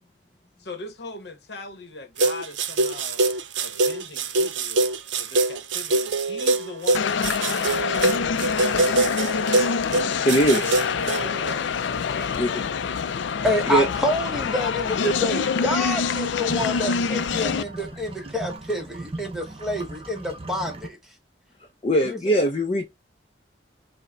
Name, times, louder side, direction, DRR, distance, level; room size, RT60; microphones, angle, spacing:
voice 1, 0.6-3.2 3.6-4.9 5.2-8.3 8.7-9.7 10.1-13.1, left 2 dB, 65° left, 0.9 m, -40 dB
sound 1, 2.2-11.5, right 2 dB, 90° right, 0.6 m, -24 dB
sound 2, 6.9-17.6, left 6 dB, 85° left, 0.4 m, -26 dB
voice 2, 10.2-10.8 12.4-12.6 13.7-13.9 21.8-22.9, right 1 dB, 35° left, 0.5 m, -21 dB
voice 3, 13.4-21.0 22.1-22.4, left 1 dB, ahead, 0.9 m, -27 dB
sound 3, 15.9-20.9, right 2 dB, 30° right, 0.6 m, -38 dB
5.4 x 2.1 x 3.7 m
head